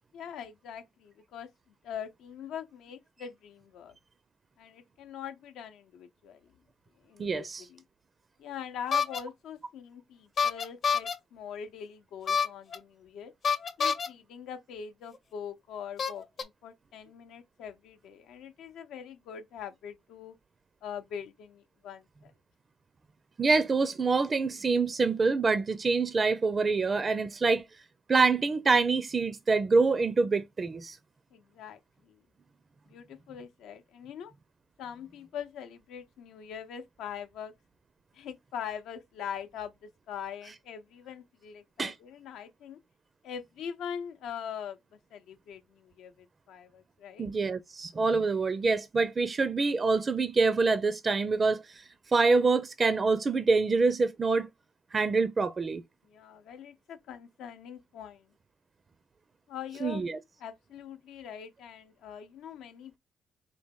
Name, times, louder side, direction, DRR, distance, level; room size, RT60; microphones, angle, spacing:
voice 1, 0.1-1.5 1.8-4.0 4.6-6.4 7.0-7.8 8.4-13.3 13.8-20.4 20.8-22.3 27.2-27.3 31.3-32.2 32.9-34.3 34.8-37.5 38.1-42.8 43.2-44.8 45.1-47.3 56.0-58.3 59.5-60.0 60.4-63.0, left 8 dB, 85° left, 0.6 m, -42 dB
voice 2, 7.2-7.6 23.4-27.6 28.1-31.0 41.8-41.9 47.2-54.5 54.9-55.8 59.8-60.2, right 4 dB, 35° right, 0.4 m, -26 dB
sound 1, 8.9-9.2 10.4-11.1 12.3-12.8 13.4-14.1 15.1-15.2 16.0-16.4, left 6 dB, 55° left, 0.8 m, -27 dB
4.2 x 2.9 x 3.6 m
cardioid pair, 90°, 0 cm